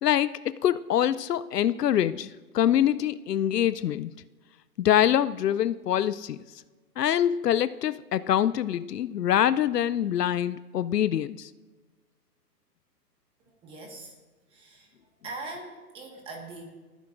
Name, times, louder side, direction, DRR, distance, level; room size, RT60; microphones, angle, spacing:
voice 1, 0.0-2.3 2.5-4.1 4.8-6.4 7.0-11.5, left 10 dB, 70° left, 15 dB, 0.6 m, -24 dB
voice 2, 13.5-14.1 14.5-14.9 15.2-16.6, right 3 dB, 10° right, 2 dB, 1.5 m, -41 dB
29.5 x 10.0 x 2.5 m, 1.3 s
hypercardioid pair, 155°, 49 cm